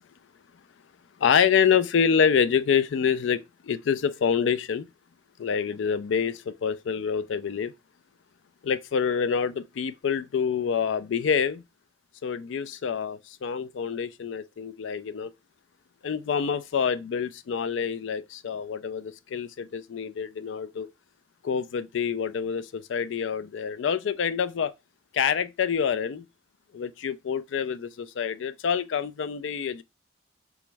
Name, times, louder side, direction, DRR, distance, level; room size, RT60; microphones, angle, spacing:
voice 1, 1.2-4.9 5.4-7.7 8.6-11.6 12.2-15.3 16.0-20.9 21.4-24.7 25.1-26.2 26.7-29.8, left 7 dB, 80° left, 0.4 m, -26 dB
3.5 x 3.0 x 3.3 m
head